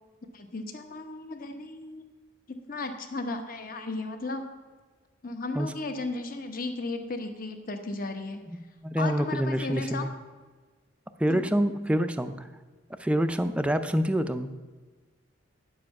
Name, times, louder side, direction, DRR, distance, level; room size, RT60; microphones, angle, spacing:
voice 1, 0.3-2.0 2.5-4.5 5.2-8.4 9.0-10.1 11.3-11.5, left 2 dB, 45° left, 6 dB, 1.0 m, -35 dB
voice 2, 8.5-10.1 11.2-12.5 13.0-14.5, equal, 5° right, 8 dB, 0.4 m, -27 dB
9.8 x 7.6 x 5.9 m, 1.4 s
head